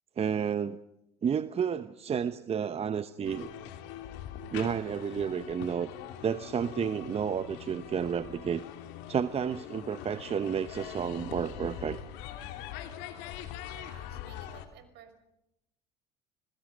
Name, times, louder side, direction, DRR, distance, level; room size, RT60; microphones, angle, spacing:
voice 1, 0.2-0.8 1.2-3.5 4.5-5.9 6.2-8.6 9.1-12.0, right 7 dB, 30° right, 12 dB, 1.0 m, -31 dB
sound 1, 3.2-14.7, left 10 dB, 65° left, 3.1 m, -43 dB
voice 2, 13.7-15.2, right 8 dB, 60° right, 9 dB, 5.7 m, -54 dB
29.5 x 21.5 x 5.3 m, 0.85 s
hypercardioid pair, 75°, 20 cm